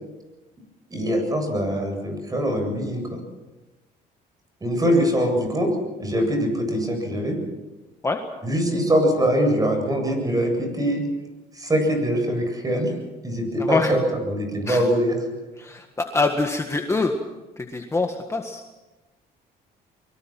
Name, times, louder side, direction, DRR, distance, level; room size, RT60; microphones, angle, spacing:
voice 1, 0.9-3.2 4.6-5.7 6.0-7.4 8.4-11.0 11.6-12.9 13.2-15.2, equal, 20° right, 5 dB, 7.9 m, -23 dB
voice 2, 13.6-13.9 14.7-14.8 15.6-17.1 17.6-18.6, left 3 dB, 15° left, 4 dB, 1.7 m, -24 dB
24.0 x 23.5 x 6.1 m, 1.1 s
cardioid pair, 110°, 17 cm